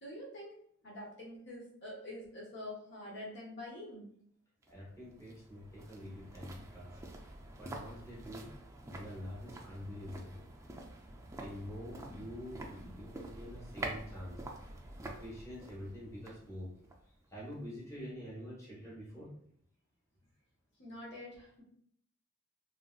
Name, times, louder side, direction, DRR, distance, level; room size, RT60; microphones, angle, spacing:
voice 1, 0.0-4.0 20.8-21.6, left 1 dB, 55° left, -3 dB, 0.9 m, -46 dB
sound 1, 4.6-17.8 18.1-18.2, right 2 dB, 15° right, 0.3 m, -48 dB
voice 2, 4.7-7.0 7.6-8.5 8.8-10.4 11.1-14.4 15.0-16.7 17.3-19.3, equal, 15° left, -6 dB, 1.0 m, -46 dB
3.0 x 2.8 x 2.3 m, 0.66 s
head